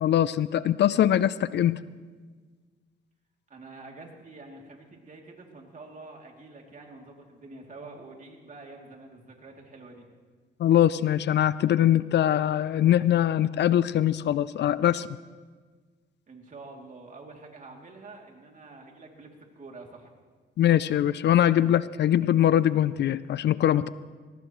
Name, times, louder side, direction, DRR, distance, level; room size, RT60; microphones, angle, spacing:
voice 1, 0.0-1.8 10.6-15.1 20.6-23.9, left 11 dB, 60° left, 17 dB, 0.5 m, -22 dB
voice 2, 3.5-10.1 16.3-20.1, right 3 dB, 40° right, 1 dB, 2.9 m, -47 dB
21.5 x 18.0 x 3.2 m, 1.5 s
cardioid pair, 90°, 20 cm